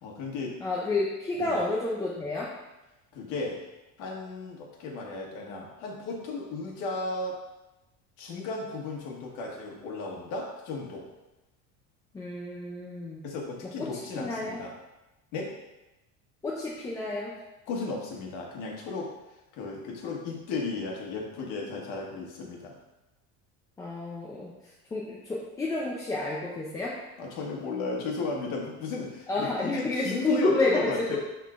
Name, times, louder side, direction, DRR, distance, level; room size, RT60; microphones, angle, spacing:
voice 1, 0.0-0.5 1.4-1.6 3.1-3.6 4.0-7.4 8.2-11.1 13.2-14.7 15.3-15.5 17.7-19.1 19.5-22.7 27.2-31.2, left 3 dB, 65° left, -2 dB, 1.5 m, -34 dB
voice 2, 0.6-2.5 12.1-13.2 13.8-13.9 14.2-14.6 16.4-17.3 23.8-27.0 29.3-31.2, left 2 dB, 10° left, -4 dB, 0.4 m, -30 dB
11.0 x 3.7 x 2.5 m, 0.99 s
cardioid pair, 175°, 33 cm